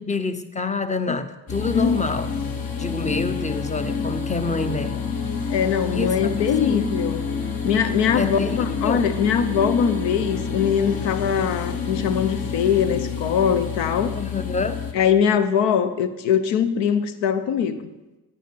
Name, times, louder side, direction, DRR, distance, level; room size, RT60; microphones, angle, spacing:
voice 1, 0.0-2.3 2.8-5.0 5.9-7.0 8.2-9.1 14.1-14.9, left 4 dB, 15° left, 10 dB, 0.9 m, -27 dB
sound 1, 1.5-14.9, left 6 dB, 50° left, 1.4 m, -28 dB
voice 2, 1.7-2.0 5.5-7.2 7.6-14.1 14.9-17.9, left 7 dB, 75° left, 12 dB, 0.8 m, -22 dB
9.1 x 8.9 x 4.6 m, 1.1 s
hypercardioid pair, 45°, 44 cm